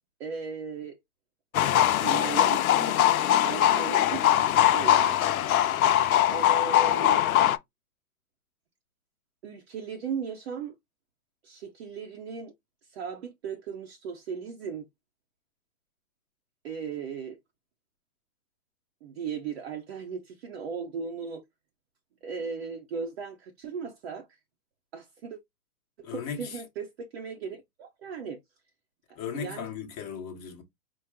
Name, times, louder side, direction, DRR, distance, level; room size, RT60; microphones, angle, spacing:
voice 1, 0.2-1.0 1.7-3.1 3.4-4.3 4.7-5.3 6.3-7.2 9.4-10.7 11.4-12.5 12.9-14.9 16.6-17.4 19.0-21.4 22.2-24.3 24.9-25.4 26.0-28.4 29.3-29.7, right 6 dB, 45° right, 0.7 m, -37 dB
sound 1, 1.5-7.6, left 12 dB, 65° left, 0.6 m, -22 dB
voice 2, 26.0-26.6 29.2-30.6, left 7 dB, 25° left, 0.9 m, -37 dB
4.5 x 2.0 x 3.5 m
hypercardioid pair, 140°, 46 cm